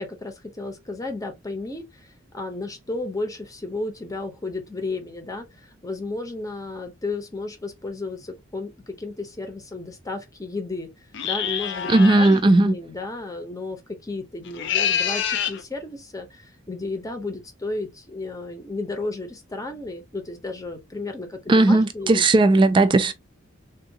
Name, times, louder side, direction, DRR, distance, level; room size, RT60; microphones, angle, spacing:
voice 1, 0.0-10.9 11.2-11.9 12.2-22.3, left 2 dB, 15° left, 0.7 m, -33 dB
sound 1, 11.1-12.4 14.4-15.6, left 8 dB, 60° left, 0.5 m, -26 dB
voice 2, 11.9-12.7 21.5-23.1, right 2 dB, 25° right, 0.3 m, -16 dB
3.5 x 2.4 x 2.7 m
head